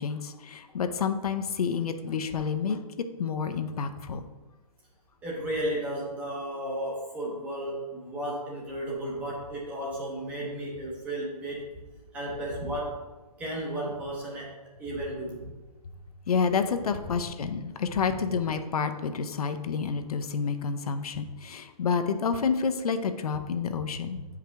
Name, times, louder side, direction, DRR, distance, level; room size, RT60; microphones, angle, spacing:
voice 1, 0.0-2.8 3.2-4.3 16.3-24.3, left 6 dB, 70° left, 8 dB, 0.6 m, -29 dB
voice 2, 5.2-11.7 12.1-13.0 13.4-15.5 17.9-18.1, right 1 dB, 5° right, -4 dB, 0.7 m, -34 dB
8.1 x 4.9 x 3.4 m, 1.2 s
hypercardioid pair, 170°, 20 cm